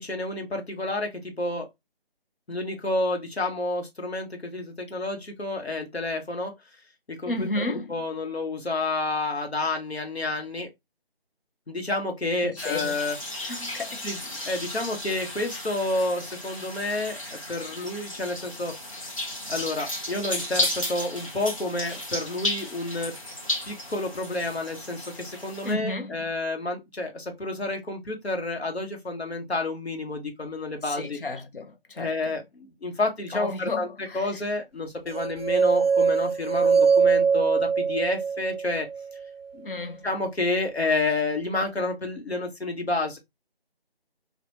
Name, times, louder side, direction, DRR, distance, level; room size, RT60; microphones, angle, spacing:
voice 1, 0.0-1.7 2.5-6.5 7.1-7.6 7.9-10.7 11.7-13.2 14.0-14.2 14.4-18.7 19.5-23.1 23.7-31.2 32.0-33.9 34.1-38.9 39.5-39.7 40.0-43.2, left 2 dB, 85° left, 1.2 m, -29 dB
voice 2, 7.3-7.9 12.4-13.0 13.4-14.1 25.6-26.3 30.8-32.4 33.3-34.3 39.6-40.1, left 2 dB, 60° left, 0.7 m, -33 dB
sound 1, 12.6-25.7, left 1 dB, 35° left, 0.9 m, -34 dB
sound 2, 35.1-39.2, right 6 dB, 70° right, 0.4 m, -22 dB
3.5 x 2.5 x 2.7 m
figure-of-eight pair, 165°, 31 cm